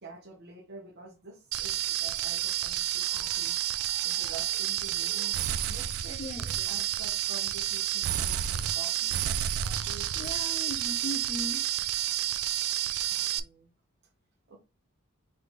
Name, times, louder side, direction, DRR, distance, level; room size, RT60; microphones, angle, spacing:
voice 1, 0.0-9.3 9.6-10.3 13.1-13.7 14.5-14.6, right 3 dB, 50° right, 1.0 m, -48 dB
sound 1, 1.5-13.4, right 12 dB, 85° right, 0.4 m, -30 dB
voice 2, 6.2-6.8 10.2-11.7, left 1 dB, 30° left, 0.3 m, -38 dB
3.3 x 3.2 x 4.0 m
head